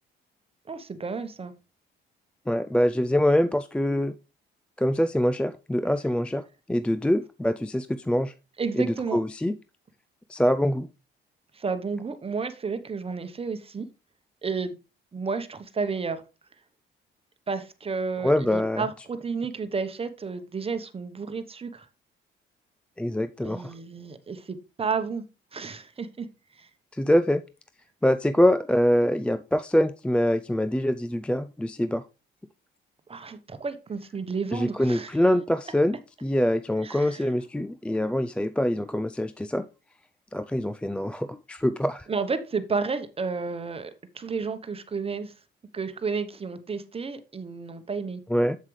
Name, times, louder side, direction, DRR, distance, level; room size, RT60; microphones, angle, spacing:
voice 1, 0.7-1.5 8.6-9.2 11.5-13.9 14.4-14.8 15.1-16.2 17.5-21.9 23.4-25.2 25.5-26.3 26.6-26.7 33.1-35.1 36.8-37.3 42.1-45.3 45.7-48.2, right 5 dB, 30° right, 1.0 m, -31 dB
voice 2, 2.5-4.1 4.8-8.3 8.7-9.6 10.3-10.9 18.2-18.9 23.0-23.7 26.9-27.4 28.0-32.0 34.5-39.7 40.3-42.1 48.3-48.6, left 1 dB, 5° left, 0.3 m, -24 dB
7.5 x 7.4 x 3.2 m
cardioid pair, 95°, 20 cm